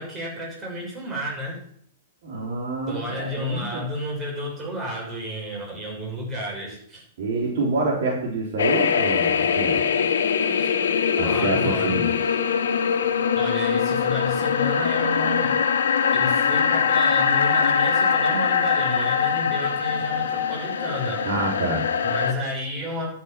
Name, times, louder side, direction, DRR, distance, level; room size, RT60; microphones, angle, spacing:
voice 1, 0.0-1.6 2.9-7.0 10.6-10.8 11.1-12.5 13.3-15.6 16.1-21.3 22.0-23.1, equal, 20° right, -2 dB, 6.5 m, -32 dB
voice 2, 2.2-3.8 7.2-9.8 11.2-12.1 21.2-21.9, right 2 dB, 65° right, -2 dB, 3.8 m, -27 dB
sound 1, 8.6-22.3, left 7 dB, 85° left, 1.5 m, -22 dB
12.5 x 7.6 x 6.0 m, 0.66 s
hypercardioid pair, 140°, 0 cm